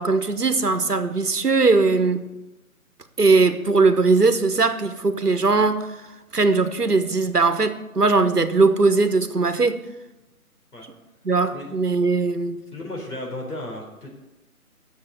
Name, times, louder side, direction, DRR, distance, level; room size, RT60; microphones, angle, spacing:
voice 1, 0.0-2.3 3.2-5.9 6.3-9.8 11.2-12.6, right 3 dB, 85° right, 10 dB, 1.2 m, -20 dB
voice 2, 12.7-14.1, left 1 dB, 80° left, -1 dB, 4.2 m, -34 dB
9.6 x 7.0 x 8.0 m, 1.0 s
figure-of-eight pair, 145°, 45 cm